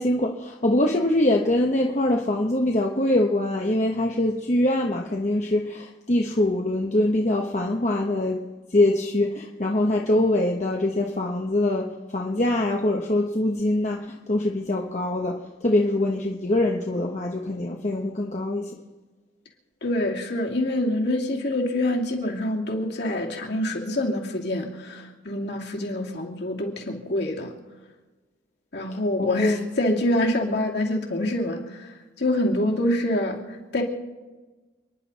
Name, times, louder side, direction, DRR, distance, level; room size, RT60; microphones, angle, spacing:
voice 1, 0.0-8.4 8.7-18.7 29.2-29.6, left 1 dB, 35° left, 0 dB, 1.1 m, -23 dB
voice 2, 19.8-27.5 28.7-31.9 32.2-33.4 33.7-33.8, left 1 dB, 60° left, -1 dB, 2.8 m, -26 dB
29.5 x 10.5 x 4.2 m, 1.2 s
head